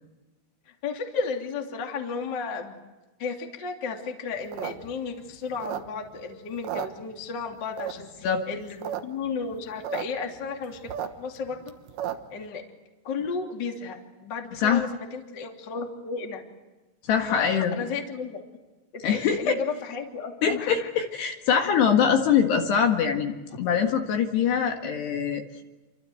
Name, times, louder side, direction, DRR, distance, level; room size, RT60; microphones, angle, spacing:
voice 1, 0.8-2.8 3.2-11.7 12.3-12.6 13.0-16.4 17.3-18.4 19.1-20.9, left 5 dB, 30° left, 2 dB, 2.4 m, -33 dB
sound 1, 4.4-6.2 6.5-7.4 7.8-8.2 8.6-9.0 9.3-9.4 9.5-10.0 10.4-12.4, right 10 dB, 65° right, 2.6 m, -34 dB
voice 2, 17.1-17.7 19.0-19.5 20.4-23.3 23.6-25.4, left 7 dB, 65° left, 3 dB, 3.5 m, -23 dB
28.5 x 25.5 x 7.8 m, 1.1 s
omnidirectional pair, 5.9 m